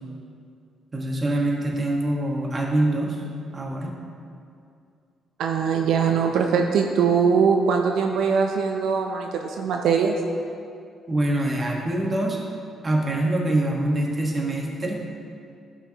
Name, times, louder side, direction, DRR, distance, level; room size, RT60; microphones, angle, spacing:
voice 1, 0.9-3.2 3.5-3.9 11.1-12.4 12.8-15.0, right 1 dB, 30° right, 0 dB, 1.3 m, -24 dB
voice 2, 5.4-10.2, right 6 dB, 80° right, 3 dB, 0.5 m, -21 dB
11.5 x 5.7 x 2.9 m, 2.4 s
cardioid pair, 90°, 0 cm